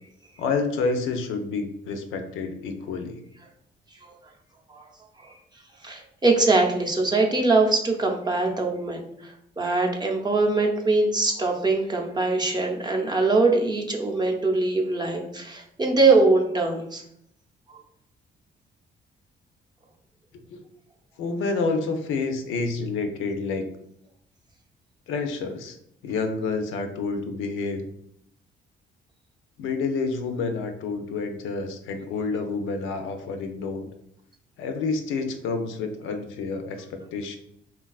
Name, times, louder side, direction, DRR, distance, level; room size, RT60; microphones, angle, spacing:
voice 1, 0.4-3.2 20.5-20.6 21.2-23.6 25.1-25.8 26.0-27.8 29.6-33.9 34.6-37.4, left 4 dB, 85° left, 6 dB, 0.4 m, -29 dB
voice 2, 5.8-17.0 17.7-17.8, right 3 dB, 20° right, 1 dB, 0.5 m, -22 dB
3.2 x 2.2 x 2.3 m, 0.74 s
cardioid pair, 90°, 20 cm